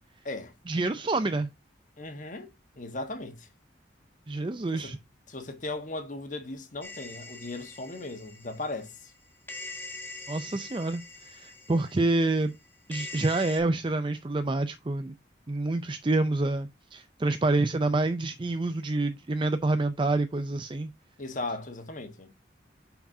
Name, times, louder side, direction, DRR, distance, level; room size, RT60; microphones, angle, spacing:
voice 1, 0.7-1.5 4.3-5.0 10.3-12.5 12.9-15.1 15.5-20.9, right 2 dB, 25° right, 0.5 m, -27 dB
voice 2, 2.0-3.5 4.7-4.9 5.3-9.1 11.7-11.8 21.2-22.3, left 2 dB, 45° left, 1.3 m, -37 dB
sound 1, 6.8-9.2 9.5-13.6, left 3 dB, 10° left, 1.4 m, -43 dB
8.1 x 6.0 x 2.7 m
head